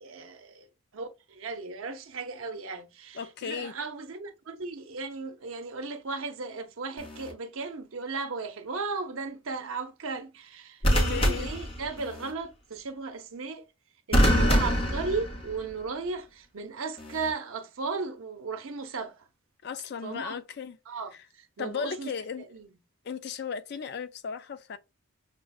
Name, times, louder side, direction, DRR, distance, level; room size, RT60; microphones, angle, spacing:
voice 1, 0.0-13.7 14.1-19.3 20.0-20.4 20.9-22.1 22.4-22.7, right 4 dB, 70° right, 0.7 m, -36 dB
voice 2, 3.2-3.7 10.8-11.5 19.6-20.8 21.6-22.4 23.0-24.8, left 6 dB, 50° left, 0.4 m, -36 dB
sound 1, 7.0-7.3 10.8-12.3 14.1-15.8 17.0-17.3, equal, 25° left, 0.7 m, -25 dB
6.0 x 2.1 x 2.3 m
head